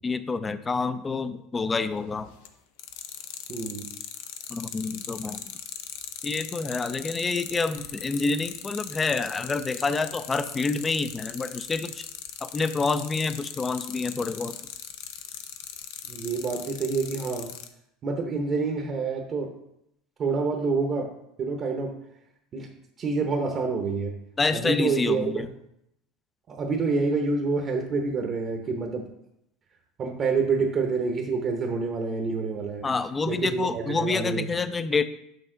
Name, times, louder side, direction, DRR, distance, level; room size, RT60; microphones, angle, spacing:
voice 1, 0.0-2.3 4.5-5.5 6.2-12.0 12.4-14.6 24.4-25.5 32.8-35.0, left 4 dB, 20° left, 12 dB, 0.4 m, -28 dB
sound 1, 2.1-2.5 2.8-17.7, left 11 dB, 75° left, 0.6 m, -38 dB
voice 2, 3.5-3.9 16.1-17.5 18.0-19.5 20.2-21.1 21.4-21.9 22.5-22.7 23.0-24.1 24.5-25.3 26.5-29.0 30.0-32.9 33.3-34.5, right 4 dB, 35° right, 3 dB, 0.8 m, -27 dB
6.5 x 5.5 x 3.8 m, 0.80 s
supercardioid pair, 125°, 0 cm